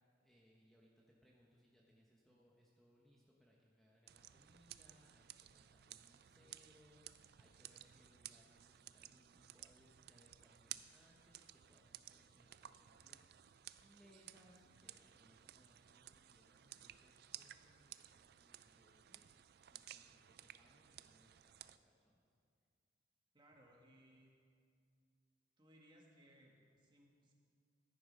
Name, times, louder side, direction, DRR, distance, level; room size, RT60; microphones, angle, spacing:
voice 1, 0.2-19.3 19.7-22.2, equal, ahead, -4 dB, 1.0 m, -70 dB
sound 1, 4.1-21.8, right 12 dB, 55° right, 0.4 m, -57 dB
voice 2, 23.3-24.3 25.6-27.3, equal, 25° right, -1 dB, 1.8 m, -66 dB
15.0 x 9.5 x 5.3 m, 2.2 s
head